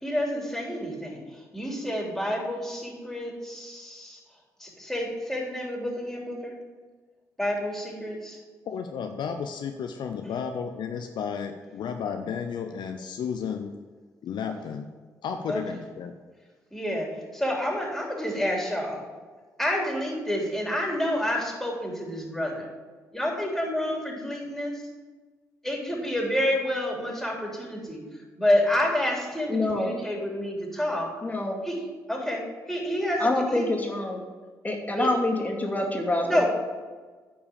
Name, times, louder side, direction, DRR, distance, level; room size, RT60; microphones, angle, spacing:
voice 1, 0.0-4.2 4.6-6.5 7.4-8.4 15.5-15.6 16.7-19.0 19.6-22.7 23.1-24.8 25.6-28.0 28.4-31.1 31.6-31.8 32.1-33.7 35.0-35.1 36.2-36.5, left 1 dB, 5° left, -1 dB, 3.4 m, -29 dB
voice 2, 8.7-13.7 14.2-14.9 15.2-16.1, left 6 dB, 65° left, 6 dB, 0.6 m, -33 dB
voice 3, 29.5-29.9 31.2-31.6 33.2-34.2 34.6-36.5, left 2 dB, 20° left, 0 dB, 2.4 m, -26 dB
10.0 x 4.7 x 7.1 m, 1.4 s
hypercardioid pair, 45°, 8 cm